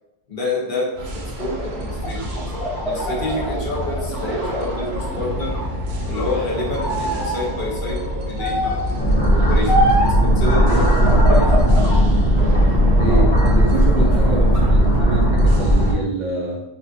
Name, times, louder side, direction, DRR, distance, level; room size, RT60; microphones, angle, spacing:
voice 1, 0.3-0.9 1.1-5.5 6.1-9.8 10.2-11.5 13.0-13.3, left 2 dB, 55° left, -5 dB, 1.0 m, -28 dB
sound 1, 1.0-15.9, equal, 85° right, 0.8 m, -28 dB
sound 2, 1.9-5.1 5.5-6.4 6.8-7.4 8.4-8.9 9.7-10.2 11.0-12.0 12.5-13.5 13.9-14.6, equal, 80° left, 1.0 m, -24 dB
sound 3, 9.0-15.9, equal, 30° left, 1.1 m, -16 dB
voice 2, 10.5-11.4 13.0-16.6, right 2 dB, 55° right, -2 dB, 0.6 m, -25 dB
3.5 x 2.4 x 2.6 m, 0.95 s
omnidirectional pair, 1.0 m